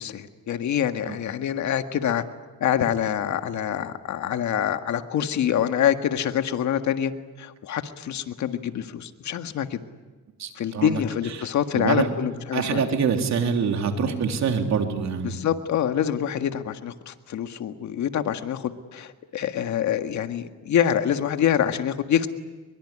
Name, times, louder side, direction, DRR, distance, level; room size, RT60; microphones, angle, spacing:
voice 1, 0.0-2.2 2.6-7.1 7.4-9.8 10.6-12.8 15.2-22.3, left 9 dB, 70° left, 7 dB, 1.8 m, -26 dB
voice 2, 10.4-11.0 11.4-11.5 11.7-12.1 12.5-15.4, right 6 dB, 65° right, 4 dB, 3.5 m, -25 dB
23.0 x 22.5 x 10.0 m, 1.3 s
cardioid pair, 90°, 30 cm